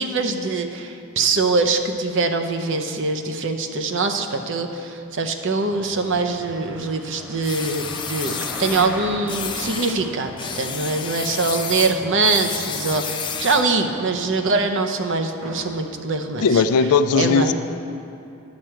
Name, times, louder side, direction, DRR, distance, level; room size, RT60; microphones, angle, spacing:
voice 1, 0.0-16.6 17.1-17.5, right 3 dB, 60° right, 6 dB, 0.7 m, -23 dB
Car passing by, 5.6-11.6, equal, 5° right, 1.1 m, -39 dB
sound 1, 5.6-15.8 16.2-16.5, equal, 85° right, 2.5 m, -41 dB
sound 2, 7.4-8.9 9.3-10.0 10.4-13.7, left 7 dB, 20° left, 0.4 m, -30 dB
voice 2, 16.4-17.5, left 5 dB, 85° left, 12 dB, 0.4 m, -17 dB
10.5 x 4.6 x 7.7 m, 2.6 s
head